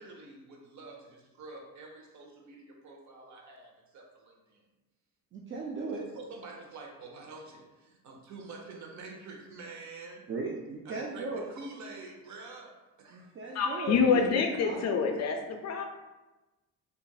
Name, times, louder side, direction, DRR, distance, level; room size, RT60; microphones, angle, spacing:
voice 1, 0.0-4.6 6.0-10.2 10.8-13.4 14.2-14.6, right 3 dB, 50° right, 1 dB, 0.8 m, -47 dB
voice 2, 5.3-6.0 10.3-11.5 13.1-15.2, right 3 dB, 35° right, -2 dB, 0.4 m, -37 dB
voice 3, 13.5-15.8, left 5 dB, 45° left, 4 dB, 0.4 m, -27 dB
3.7 x 2.5 x 2.3 m, 1.1 s
cardioid pair, 90°, 37 cm